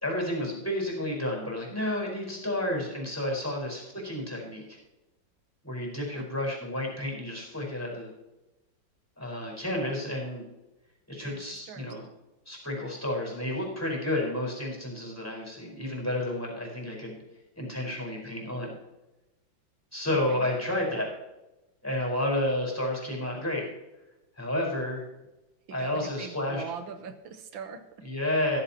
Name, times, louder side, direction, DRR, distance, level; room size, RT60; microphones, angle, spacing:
voice 1, 0.0-4.8 5.6-8.1 9.2-10.4 11.1-12.0 12.5-17.2 17.6-18.8 19.9-21.1 21.8-23.7 24.4-25.0 25.7-26.7 28.0-28.6, left 1 dB, 5° left, -1 dB, 4.6 m, -31 dB
voice 2, 11.2-11.9 20.1-20.4 25.7-27.8, right 7 dB, 85° right, 8 dB, 1.8 m, -42 dB
15.0 x 14.5 x 2.9 m, 1.0 s
omnidirectional pair, 2.1 m